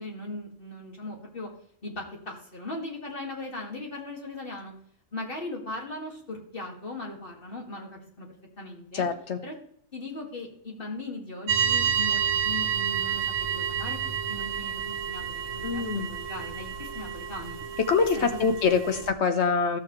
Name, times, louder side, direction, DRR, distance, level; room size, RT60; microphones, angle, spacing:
voice 1, 0.0-1.5 1.8-4.7 5.1-9.1 9.4-9.6 9.9-14.0 14.3-17.6 18.1-18.6 19.0-19.1, left 2 dB, 45° left, 0 dB, 2.4 m, -39 dB
voice 2, 8.9-9.4 15.6-16.1 17.9-19.8, left 5 dB, 60° left, 8 dB, 1.3 m, -24 dB
sound 1, 11.5-19.1, right 7 dB, 80° right, 1.4 m, -30 dB
14.0 x 6.9 x 3.2 m, 0.64 s
omnidirectional pair, 1.3 m